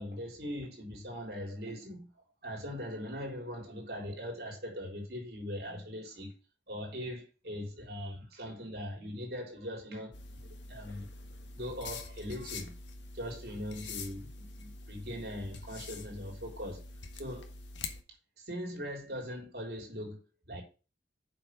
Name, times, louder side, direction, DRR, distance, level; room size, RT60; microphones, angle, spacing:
voice 1, 0.0-2.1 2.4-6.3 6.7-10.1 10.7-11.0 11.5-12.8 13.1-16.8 17.2-17.5 18.4-20.6, equal, 55° right, 3.8 m, -40 dB
sound 1, 10.1-18.0, left 4 dB, 80° left, 1.5 m, -45 dB
7.6 x 6.1 x 6.1 m
head